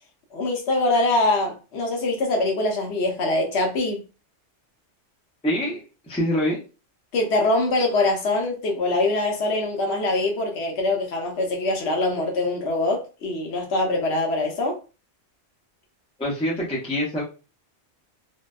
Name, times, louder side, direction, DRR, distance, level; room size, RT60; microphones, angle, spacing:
voice 1, 0.3-4.0 7.1-14.8, left 2 dB, 65° left, 0.9 m, -23 dB
voice 2, 5.4-6.6 16.2-17.2, equal, 10° left, 0.5 m, -25 dB
2.6 x 2.1 x 2.2 m
omnidirectional pair, 1.3 m